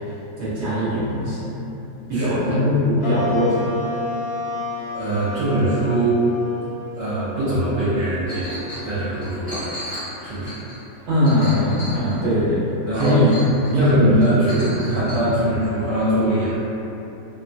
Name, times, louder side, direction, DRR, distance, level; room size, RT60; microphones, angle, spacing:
voice 1, 0.4-1.5 2.1-3.7 11.1-12.6 12.9-13.4 13.7-14.0 14.8-14.9, left 1 dB, 60° right, -11 dB, 0.7 m, -20 dB
voice 2, 2.1-2.6 4.9-6.2 6.9-8.5 8.8-9.7 10.2-10.5 12.9-13.3 13.7-16.6, right 1 dB, 80° right, -11 dB, 1.3 m, -22 dB
sound 1, 3.0-9.7, left 2 dB, 70° left, 0.7 m, -32 dB
Chink clink, 8.3-8.9 9.2-12.3 13.0-13.9 14.2-15.2, equal, 10° right, 0.6 m, -35 dB
3.0 x 2.1 x 2.5 m, 3.0 s
omnidirectional pair, 1.9 m